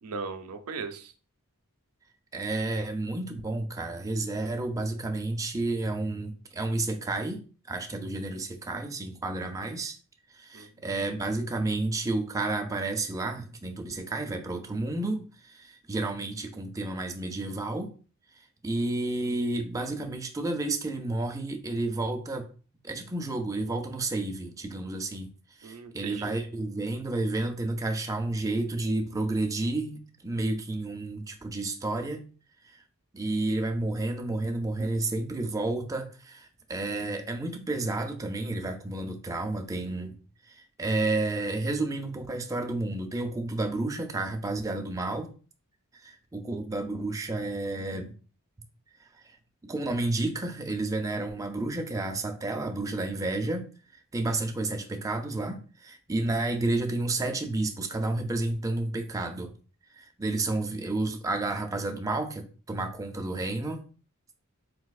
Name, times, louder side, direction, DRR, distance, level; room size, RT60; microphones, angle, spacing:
voice 1, 0.0-1.1 10.5-10.9 25.6-26.3, right 4 dB, 85° right, 8 dB, 0.5 m, -38 dB
voice 2, 2.3-7.4 7.7-10.0 10.3-17.9 18.4-22.5 22.8-25.3 25.6-32.2 32.6-32.8 33.1-40.2 40.5-45.3 46.0-48.2 49.2-49.4 49.6-53.7 54.1-59.6 60.0-63.8, right 2 dB, 15° right, 4 dB, 0.4 m, -31 dB
3.9 x 2.6 x 2.3 m, 0.38 s
head